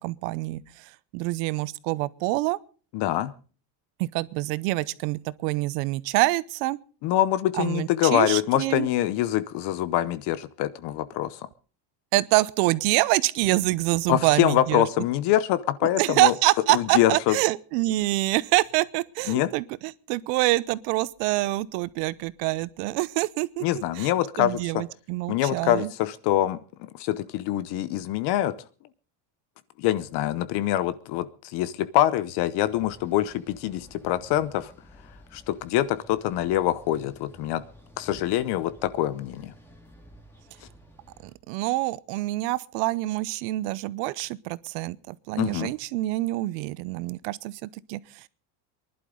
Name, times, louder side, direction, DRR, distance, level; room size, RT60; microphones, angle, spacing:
voice 1, 0.0-2.6 4.0-6.8 7.6-8.9 12.1-14.8 16.0-23.6 24.0-24.1 24.4-25.9 41.2-48.2, right 19 dB, 85° right, 0.8 m, -26 dB
voice 2, 2.9-3.3 7.0-11.4 14.1-16.3 16.7-17.4 19.3-19.5 23.6-24.6 25.3-28.5 29.8-34.7 35.3-37.6 38.0-39.5 45.4-45.7, left 13 dB, 55° left, 0.9 m, -25 dB
sound 1, 32.7-41.3, equal, 5° left, 2.1 m, -51 dB
24.0 x 11.5 x 3.8 m
cardioid pair, 150°, 47 cm